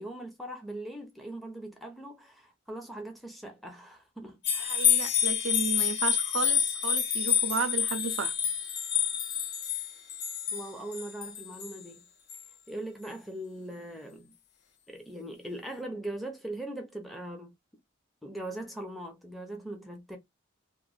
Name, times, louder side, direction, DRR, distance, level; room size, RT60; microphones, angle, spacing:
voice 1, 0.0-5.0 10.5-12.0 12.7-14.3 14.9-17.5 18.2-20.2, right 1 dB, ahead, 0.5 m, -40 dB
sound 1, 4.4-11.8 12.3-12.4, left 9 dB, 55° left, 0.5 m, -28 dB
voice 2, 4.7-8.3, right 5 dB, 90° right, 0.5 m, -33 dB
2.9 x 2.0 x 2.3 m
head